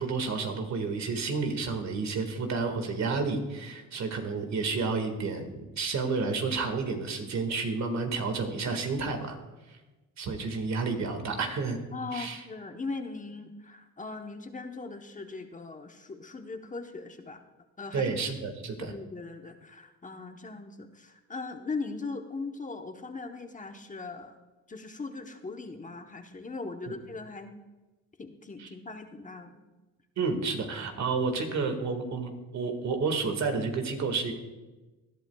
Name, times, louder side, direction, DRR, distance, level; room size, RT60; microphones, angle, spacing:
voice 1, 0.0-9.4 9.7-9.8 10.2-11.8 12.1-12.4 17.9-18.9 28.6-28.7 30.2-34.3, right 4 dB, 65° right, 6 dB, 1.9 m, -30 dB
voice 2, 11.9-17.4 17.8-18.1 18.8-24.4 24.7-27.6 28.2-29.6, left 3 dB, 25° left, 5 dB, 1.0 m, -39 dB
19.5 x 11.0 x 2.3 m, 1.2 s
cardioid pair, 90°, 30 cm